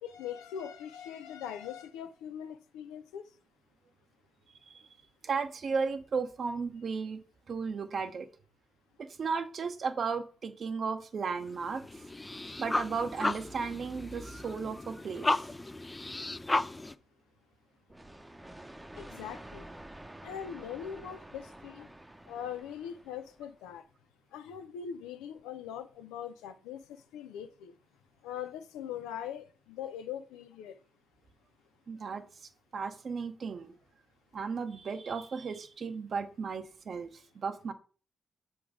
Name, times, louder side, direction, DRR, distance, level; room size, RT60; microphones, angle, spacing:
voice 1, 0.0-3.3 19.0-19.7 20.2-21.9 22.3-23.8 24.3-27.7 28.2-30.8, left 9 dB, 90° left, 0.4 m, -41 dB
voice 2, 5.2-8.3 9.0-11.9 12.6-15.3 31.9-33.7 34.3-37.7, right 5 dB, 60° right, 0.8 m, -35 dB
sound 1, 11.4-16.9, left 2 dB, 25° left, 0.5 m, -34 dB
sound 2, 17.9-23.6, right 1 dB, 15° right, 0.8 m, -49 dB
7.0 x 3.8 x 4.8 m
supercardioid pair, 45°, 0 cm